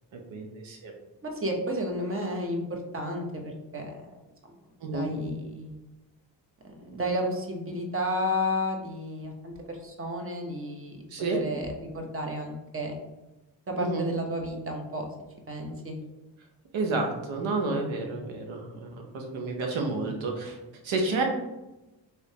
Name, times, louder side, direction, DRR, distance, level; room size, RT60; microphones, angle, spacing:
voice 1, 0.3-0.9 4.8-5.1 11.1-11.4 13.8-14.1 16.7-20.6 20.8-21.2, right 3 dB, 80° right, 2 dB, 0.8 m, -30 dB
voice 2, 1.2-4.1 4.9-5.8 6.6-11.1 11.3-13.0 13.7-15.1 15.5-15.9, equal, 30° right, 2 dB, 0.9 m, -32 dB
3.2 x 3.0 x 2.8 m, 1.0 s
cardioid pair, 55°, 46 cm